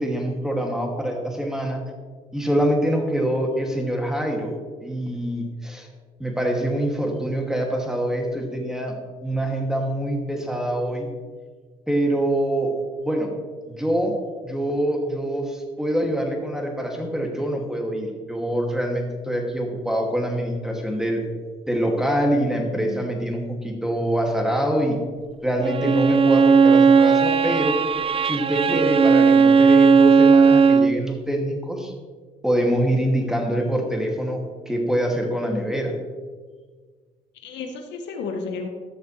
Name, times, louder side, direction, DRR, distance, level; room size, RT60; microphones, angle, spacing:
voice 1, 0.0-1.8 2.3-4.5 4.8-5.9 6.2-9.0 9.2-11.1 11.9-12.8 13.0-13.3 13.7-21.3 21.7-25.0 25.4-27.8 28.2-31.9 32.4-36.0, right 1 dB, 5° right, 1 dB, 2.4 m, -25 dB
voice 2, 22.8-23.1 37.4-38.7, left 4 dB, 70° left, 4 dB, 1.4 m, -33 dB
Bowed string instrument, 25.6-31.0, right 5 dB, 30° right, 0.4 m, -16 dB
14.5 x 6.5 x 3.3 m, 1.5 s
hypercardioid pair, 55°, 19 cm